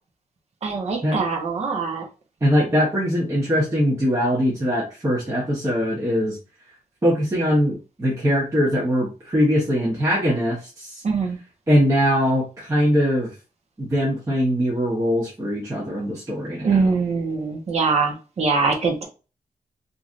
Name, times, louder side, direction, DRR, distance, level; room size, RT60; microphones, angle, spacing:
voice 1, 0.6-2.1 11.0-11.4 16.6-19.0, right 4 dB, 50° right, 1 dB, 0.8 m, -23 dB
voice 2, 2.4-6.4 7.0-11.0 11.7-13.3 13.8-16.7, equal, 20° right, -5 dB, 0.9 m, -21 dB
3.1 x 2.6 x 2.4 m, 0.32 s
wide cardioid pair, 145°, 15 cm